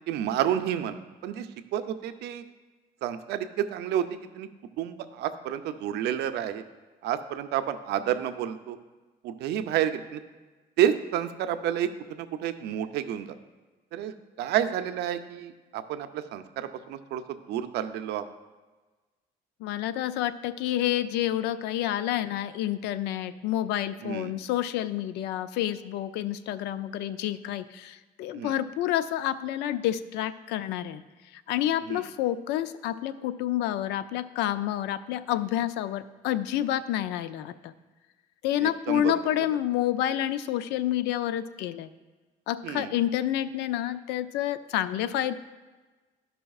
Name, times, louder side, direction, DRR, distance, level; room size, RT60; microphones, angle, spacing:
voice 1, 0.1-1.5 1.7-2.4 3.0-4.5 4.8-6.6 7.0-8.8 9.2-10.2 10.8-13.4 13.9-18.2 24.0-24.3 28.3-28.5 31.9-32.0 38.6-39.1 42.6-42.9, right 10 dB, 75° right, 10 dB, 0.5 m, -30 dB
voice 2, 19.6-31.0 31.3-37.7 38.4-41.9 42.5-45.3, left 12 dB, 85° left, 13 dB, 0.4 m, -29 dB
13.5 x 5.5 x 2.4 m, 1.3 s
cardioid pair, 110°, 17 cm